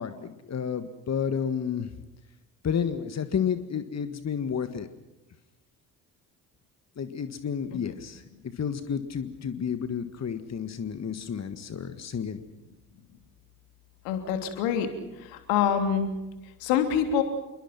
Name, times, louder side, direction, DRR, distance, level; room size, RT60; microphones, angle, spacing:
voice 1, 0.0-1.9 2.6-4.9 7.0-8.2 8.6-12.4, left 7 dB, 35° left, 10 dB, 1.7 m, -31 dB
voice 2, 14.0-14.9 15.5-16.1 16.6-17.2, left 8 dB, 70° left, 6 dB, 3.1 m, -25 dB
29.0 x 22.5 x 6.0 m, 1.0 s
figure-of-eight pair, 45°, 45 cm